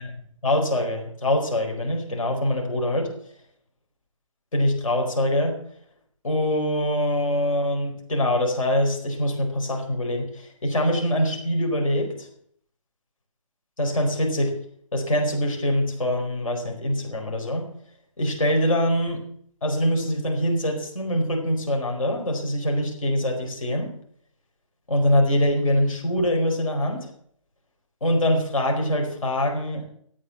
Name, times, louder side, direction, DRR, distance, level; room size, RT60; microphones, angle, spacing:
voice 1, 0.4-3.1 4.5-5.6 6.2-12.3 13.8-14.6 14.9-17.7 18.2-19.2 19.6-23.9 24.9-27.1 28.0-29.9, left 1 dB, 75° left, 3 dB, 4.6 m, -24 dB
13.0 x 9.1 x 7.0 m, 0.63 s
hypercardioid pair, 160°, 17 cm